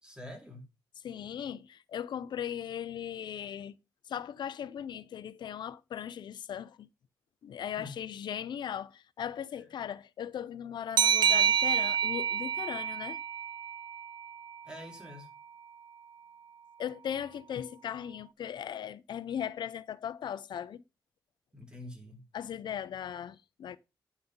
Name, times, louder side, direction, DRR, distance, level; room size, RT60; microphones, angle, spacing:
voice 1, 0.0-0.6 7.7-7.9 14.6-15.3 21.5-22.2, left 1 dB, 10° right, 3.1 m, -46 dB
voice 2, 1.0-3.7 4.1-6.9 7.4-13.2 16.8-20.8 22.3-23.8, left 9 dB, 85° left, 0.6 m, -38 dB
sound 1, 11.0-14.3, right 8 dB, 85° right, 0.5 m, -28 dB
10.0 x 5.6 x 5.4 m
wide cardioid pair, 140°, 8 cm